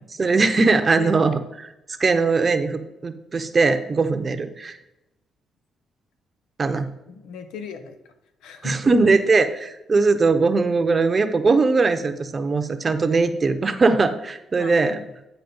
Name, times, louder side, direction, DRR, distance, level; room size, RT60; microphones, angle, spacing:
voice 1, 0.2-1.7 2.0-4.8 6.6-6.9 8.6-15.0, right 4 dB, 35° right, 9 dB, 0.7 m, -20 dB
voice 2, 7.1-8.1 8.4-9.1 14.6-15.0, left 6 dB, 90° left, 8 dB, 0.9 m, -37 dB
9.4 x 4.2 x 5.4 m, 0.92 s
cardioid pair, 90°, 0 cm